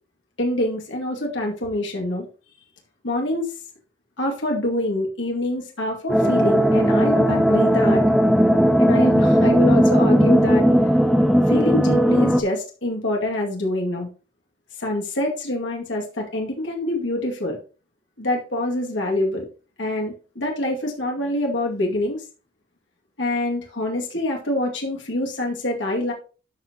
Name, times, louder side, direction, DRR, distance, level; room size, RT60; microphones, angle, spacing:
voice 1, 0.4-2.2 3.0-3.5 4.2-8.0 8.8-10.6 11.5-14.1 14.8-17.6 18.2-19.5 19.8-22.2 23.2-26.1, left 1 dB, 75° left, 0 dB, 2.3 m, -25 dB
sound 1, 6.1-12.4, equal, ahead, 0.6 m, -17 dB
12.0 x 5.5 x 2.9 m, 0.34 s
head